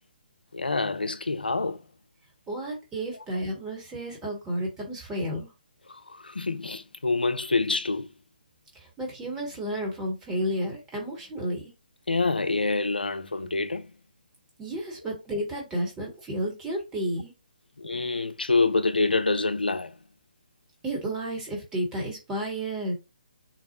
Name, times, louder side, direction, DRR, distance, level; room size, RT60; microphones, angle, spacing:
voice 1, 0.5-1.8 5.9-8.1 12.1-13.9 17.8-19.9, left 3 dB, 80° left, 0.4 m, -26 dB
voice 2, 2.5-5.5 8.7-11.7 14.6-17.3 20.8-22.9, right 1 dB, 10° right, 1.0 m, -32 dB
4.0 x 2.0 x 2.8 m
figure-of-eight pair, 140°, 5 cm